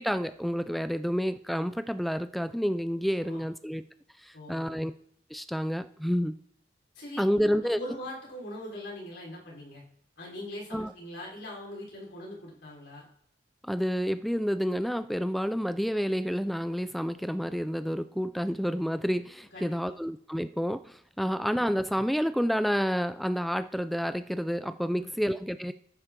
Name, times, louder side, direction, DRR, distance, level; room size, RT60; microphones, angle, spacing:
voice 1, 0.0-3.8 4.2-4.9 5.3-6.3 7.2-7.8 10.7-10.9 13.6-25.7, equal, ahead, 11 dB, 0.3 m, -29 dB
voice 2, 4.3-4.8 6.9-7.2 7.6-9.8 10.2-13.0 19.5-19.9 21.3-21.5 24.9-25.1, left 1 dB, 80° left, -3 dB, 4.5 m, -42 dB
14.0 x 10.0 x 3.7 m, 0.67 s
head